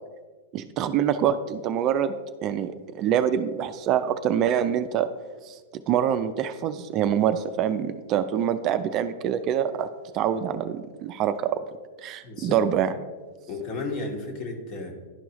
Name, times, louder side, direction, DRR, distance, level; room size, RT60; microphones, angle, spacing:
voice 1, 0.5-5.1 5.4-9.9 10.1-11.6 12.0-12.9, right 9 dB, 40° right, 10 dB, 0.4 m, -25 dB
voice 2, 12.2-12.6 13.5-14.9, left 3 dB, 40° left, 2 dB, 1.5 m, -33 dB
11.0 x 4.6 x 3.0 m, 1.4 s
hypercardioid pair, 110°, 0 cm